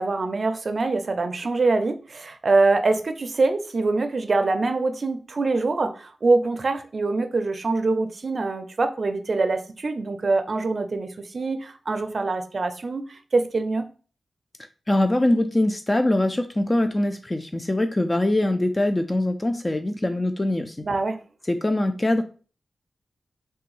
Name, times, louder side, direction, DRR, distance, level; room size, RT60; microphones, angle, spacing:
voice 1, 0.0-13.9 20.8-21.2, right 3 dB, 55° right, 8 dB, 0.4 m, -24 dB
voice 2, 14.9-20.8 21.5-22.2, left 1 dB, 25° left, 7 dB, 0.3 m, -23 dB
3.3 x 2.2 x 3.1 m, 0.38 s
cardioid pair, 50°, 0 cm